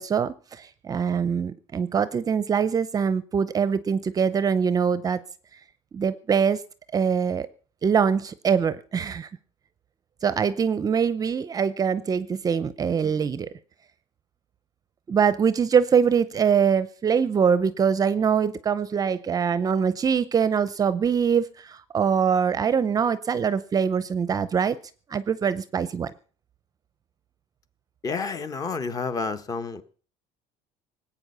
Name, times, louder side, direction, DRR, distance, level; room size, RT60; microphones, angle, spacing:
voice 1, 0.0-5.2 5.9-6.6 6.9-7.5 7.8-9.3 10.2-13.5 15.1-24.8 25.1-26.1, right 7 dB, 25° right, 0.7 m, -23 dB
voice 2, 28.0-29.8, left 4 dB, 25° left, 1.3 m, -30 dB
19.0 x 8.7 x 6.8 m
cardioid pair, 145°, 14 cm